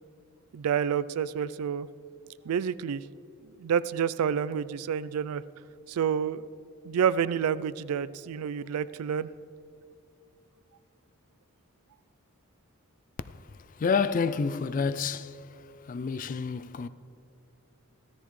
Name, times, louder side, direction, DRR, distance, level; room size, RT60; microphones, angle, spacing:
voice 1, 0.5-1.9 2.5-3.1 3.4-5.4 5.9-6.5 6.8-9.3, right 7 dB, 85° right, 0.4 m, -29 dB
voice 2, 13.7-15.4 15.9-16.9, left 5 dB, 40° left, 0.3 m, -28 dB
16.5 x 13.5 x 3.2 m
head